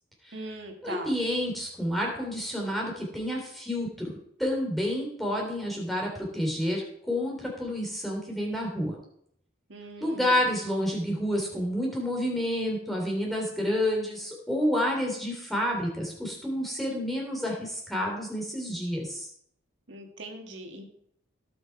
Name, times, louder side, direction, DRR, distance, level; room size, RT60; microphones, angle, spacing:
voice 1, 0.3-1.1 9.7-10.4 19.9-20.8, right 2 dB, 70° right, 3 dB, 2.0 m, -40 dB
voice 2, 0.8-8.9 10.0-19.3, equal, ahead, -1 dB, 3.4 m, -29 dB
17.5 x 6.3 x 4.7 m, 0.68 s
head